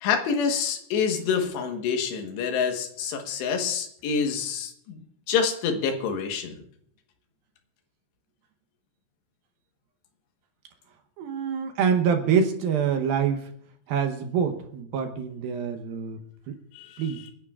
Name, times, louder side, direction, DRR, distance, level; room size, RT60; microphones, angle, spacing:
voice 1, 0.0-5.0 5.3-6.6 16.7-17.0, left 6 dB, 80° left, 5 dB, 3.5 m, -27 dB
voice 2, 11.2-13.5 13.9-16.2 16.5-16.6 17.0-17.2, right 7 dB, 70° right, 6 dB, 2.5 m, -25 dB
28.5 x 10.5 x 2.4 m, 0.66 s
omnidirectional pair, 4.9 m